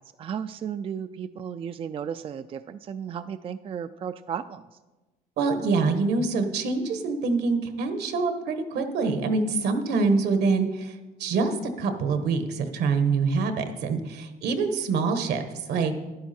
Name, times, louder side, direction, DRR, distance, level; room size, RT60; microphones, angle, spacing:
voice 1, 0.2-4.6, right 8 dB, 35° right, 11 dB, 0.3 m, -34 dB
voice 2, 5.4-10.9 11.2-15.4 15.7-16.0, right 4 dB, 75° right, 7 dB, 1.3 m, -25 dB
11.5 x 10.5 x 4.3 m, 1.2 s
cardioid pair, 110°, 17 cm